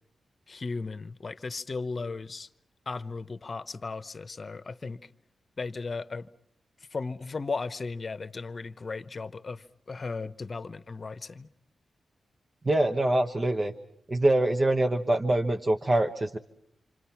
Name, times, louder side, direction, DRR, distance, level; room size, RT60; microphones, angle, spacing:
voice 1, 0.5-2.5 2.9-5.1 5.6-6.3 6.9-11.5, left 4 dB, 45° left, 0.9 m, -36 dB
voice 2, 12.6-13.7 14.1-16.4, right 1 dB, 35° right, 1.1 m, -24 dB
28.5 x 25.5 x 5.9 m
cardioid pair, 70°, 0 cm